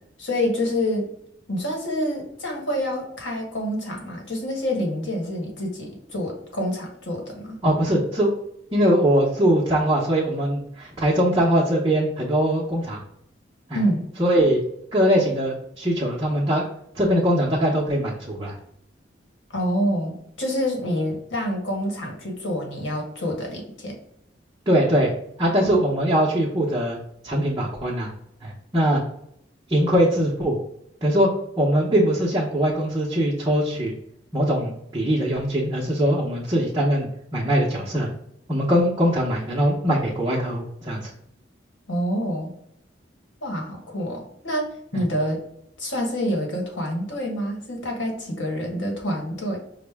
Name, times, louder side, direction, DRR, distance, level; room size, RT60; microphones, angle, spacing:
voice 1, 0.2-1.1 1.5-7.6 13.7-14.0 19.5-24.0 41.9-42.5 43.4-44.7 44.9-45.4 45.8-49.6, equal, 85° left, 0 dB, 1.3 m, -27 dB
voice 2, 7.6-8.3 8.7-13.0 13.7-13.8 14.2-14.6 14.9-16.6 16.9-18.6 24.7-25.1 25.4-27.0 27.2-28.1 28.4-29.0 29.7-30.6 31.0-31.3 31.6-33.9 34.3-37.1 37.3-38.1 38.5-41.1 44.9-45.0, equal, 20° right, -6 dB, 0.7 m, -21 dB
5.2 x 2.0 x 3.3 m, 0.74 s
head